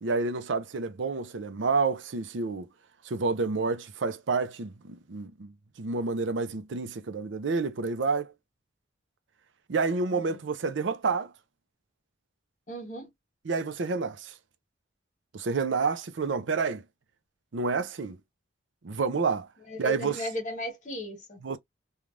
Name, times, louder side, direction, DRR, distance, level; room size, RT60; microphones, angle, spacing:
voice 1, 0.0-2.7 3.1-5.5 5.8-8.3 9.7-11.3 13.5-14.3 15.3-16.8 17.5-18.2 18.8-19.5 19.8-20.2 21.4-21.6, right 4 dB, 90° right, 0.6 m, -29 dB
voice 2, 12.7-13.1 19.7-21.4, left 1 dB, 40° left, 1.4 m, -36 dB
3.2 x 2.4 x 2.5 m
head